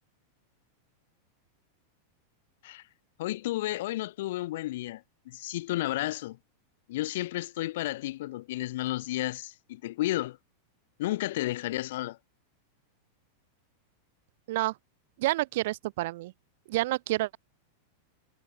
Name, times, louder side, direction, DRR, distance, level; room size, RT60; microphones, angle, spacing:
voice 1, 3.2-6.4 6.9-10.4 11.0-12.2, left 16 dB, 55° left, 2.2 m, -32 dB
voice 2, 15.2-16.3 16.7-17.4, right 18 dB, 50° right, 1.2 m, -29 dB
figure-of-eight pair, 90°, 0 cm